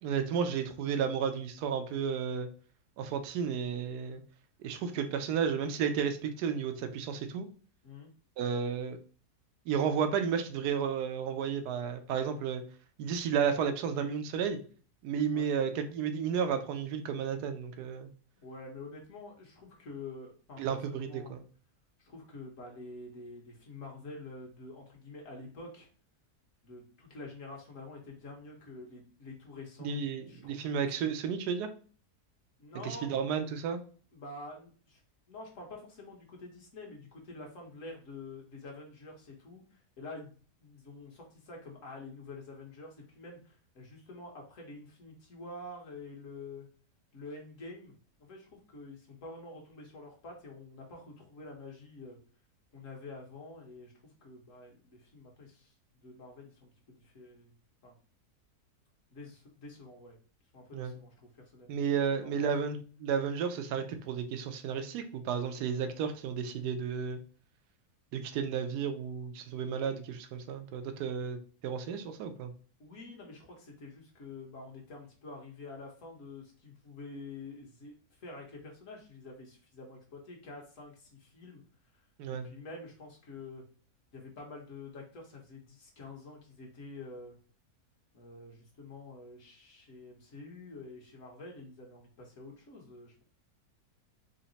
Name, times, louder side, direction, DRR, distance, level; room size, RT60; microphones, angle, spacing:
voice 1, 0.0-2.5 3.0-4.2 4.6-7.5 8.4-9.0 9.7-12.6 13.0-14.6 15.0-18.1 20.6-21.4 29.8-31.7 32.8-33.8 60.7-60.9 61.7-67.2 68.1-72.5 82.2-82.5, right 7 dB, 85° right, 7 dB, 1.2 m, -32 dB
voice 2, 18.4-21.4 22.0-25.9 26.6-30.9 32.6-33.2 34.1-35.0 35.3-46.7 47.1-52.2 52.7-57.5 57.8-58.0 59.1-60.2 60.5-61.8 62.2-62.5 72.8-81.6 81.9-83.6 84.1-87.4 88.1-93.2, left 3 dB, 55° left, 0 dB, 1.4 m, -48 dB
4.0 x 2.1 x 3.9 m, 0.40 s
omnidirectional pair, 1.7 m